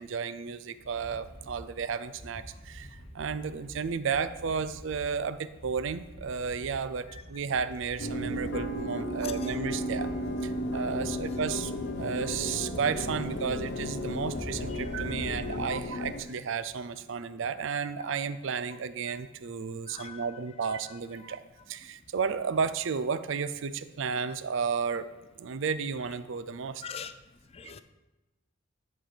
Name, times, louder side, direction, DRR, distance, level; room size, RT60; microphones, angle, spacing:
voice 1, 0.0-10.1 10.4-11.7 12.0-21.4 21.7-25.1 25.4-26.8, right 6 dB, 60° right, 0.4 m, -33 dB
sound 1, 0.8-15.6, equal, 80° right, 2.3 m, -47 dB
sound 2, 8.0-16.2, left 1 dB, 55° left, 0.8 m, -34 dB
voice 2, 19.9-20.2 26.8-27.1 27.5-27.8, left 7 dB, 30° left, 0.4 m, -41 dB
10.5 x 4.3 x 5.1 m
head